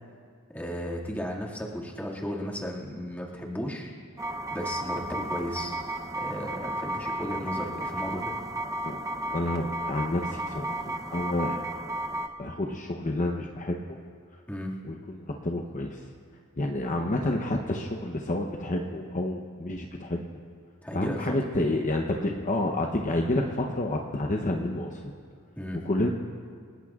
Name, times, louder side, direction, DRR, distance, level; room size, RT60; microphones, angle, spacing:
voice 1, 0.5-3.9 4.5-5.8 6.1-8.4 14.5-14.8 20.8-21.3 25.6-25.9, equal, 5° left, -3 dB, 2.1 m, -35 dB
sound 1, 4.2-12.3, right 1 dB, 15° right, 0.7 m, -33 dB
voice 2, 9.3-11.6 12.4-13.8 14.8-16.0 16.6-20.2 20.9-25.1 25.8-26.1, left 1 dB, 35° left, 2 dB, 0.8 m, -29 dB
29.5 x 18.5 x 2.4 m, 2.2 s
head